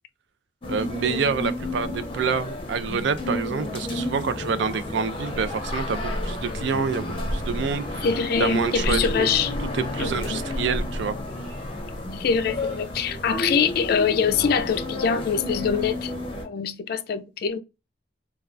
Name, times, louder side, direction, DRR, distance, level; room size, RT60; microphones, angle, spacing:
sound 1, 0.6-16.4, left 1 dB, 30° left, 0.7 m, -31 dB
voice 1, 0.7-8.1 8.4-9.3 9.7-11.2, right 5 dB, 75° right, 0.4 m, -27 dB
sound 2, 5.1-13.9, equal, 10° right, 1.1 m, -45 dB
voice 2, 8.0-9.5 10.0-10.4 12.1-16.1 16.4-17.6, left 6 dB, 55° left, 0.3 m, -24 dB
3.2 x 2.3 x 2.4 m
head